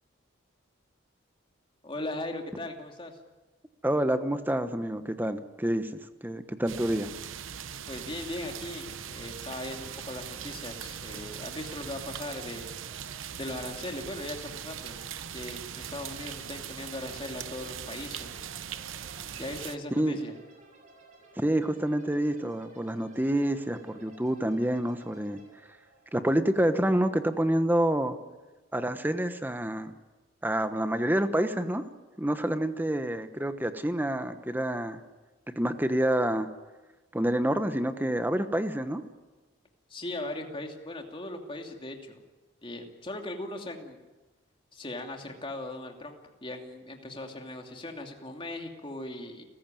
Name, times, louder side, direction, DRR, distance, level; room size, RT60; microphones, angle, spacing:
voice 1, 1.8-3.2 7.9-12.7 13.4-15.0 15.3-18.4 19.3-20.3 39.9-42.2 42.6-44.0 44.7-46.1 46.4-49.4, left 1 dB, 25° left, 3 dB, 2.8 m, -39 dB
voice 2, 3.8-7.1 19.9-20.2 21.3-25.8 26.1-28.2 28.7-29.9 30.4-31.9 32.2-35.0 35.5-36.5 37.1-39.0, right 1 dB, 10° right, 9 dB, 1.1 m, -28 dB
sound 1, 6.7-19.8, right 8 dB, 75° right, 0.9 m, -40 dB
sound 2, 9.4-27.1, right 3 dB, 40° right, 6.5 m, -56 dB
29.5 x 15.0 x 9.1 m, 1.2 s
head